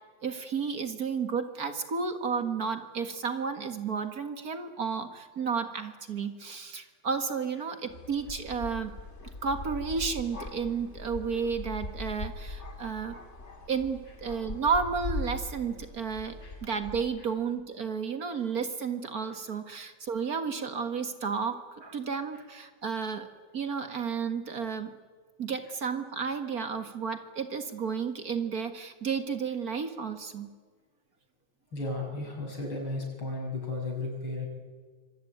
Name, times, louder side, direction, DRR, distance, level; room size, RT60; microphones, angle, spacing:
voice 1, 0.2-8.9 9.4-13.2 13.7-23.3 23.5-24.9 25.4-30.5, right 5 dB, 50° right, 8 dB, 2.0 m, -32 dB
sound 1, 7.9-17.0, left 2 dB, 35° left, 2.9 m, -40 dB
voice 2, 31.7-34.5, left 2 dB, 80° left, 2 dB, 7.0 m, -34 dB
25.5 x 23.5 x 9.4 m, 1.5 s
omnidirectional pair, 2.2 m